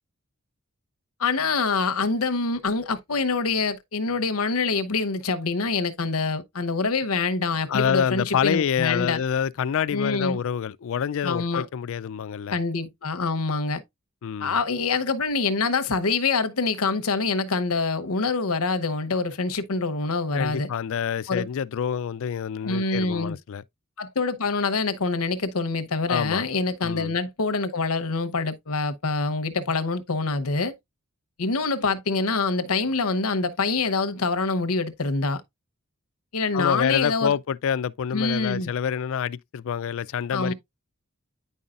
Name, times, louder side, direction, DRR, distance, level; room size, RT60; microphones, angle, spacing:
voice 1, 1.2-9.2 9.9-10.4 11.2-11.7 12.5-13.8 14.4-20.7 21.3-21.5 22.6-23.4 24.0-30.7 31.4-35.4 36.3-37.3 38.1-38.7 40.3-40.5, left 4 dB, 85° left, 0.9 m, -25 dB
voice 2, 7.7-12.5 14.2-14.6 20.3-23.6 26.1-26.5 26.8-27.2 36.5-40.5, left 7 dB, 65° left, 0.4 m, -27 dB
9.4 x 5.5 x 2.4 m
head